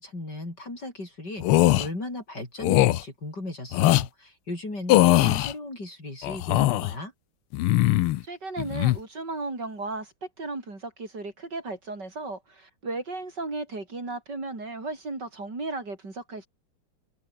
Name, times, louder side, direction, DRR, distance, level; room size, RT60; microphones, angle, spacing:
voice 1, 0.0-7.1, left 2 dB, 50° left, 8.2 m, -36 dB
sound 1, 1.4-1.9 2.6-3.0 3.7-4.1 4.9-5.5 6.2-6.9 7.5-8.2 8.6-9.0, left 16 dB, 90° left, 1.6 m, -20 dB
voice 2, 8.2-16.5, right 3 dB, 50° right, 5.9 m, -35 dB
omnidirectional pair, 2.3 m